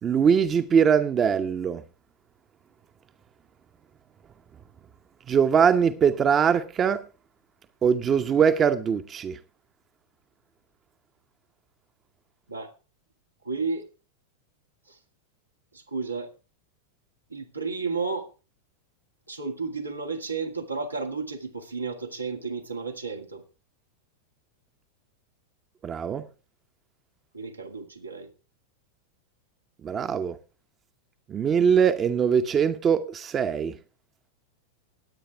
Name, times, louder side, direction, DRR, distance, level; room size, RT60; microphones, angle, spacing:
voice 1, 0.0-1.8 5.3-7.0 7.8-9.4 25.8-26.2 29.8-30.4 31.3-33.8, right 7 dB, 25° right, 0.9 m, -22 dB
voice 2, 13.5-13.9 15.7-16.3 17.3-18.3 19.3-23.4 27.3-28.3, right 4 dB, 85° right, 2.0 m, -32 dB
20.0 x 8.8 x 3.5 m
figure-of-eight pair, 90°, 0 cm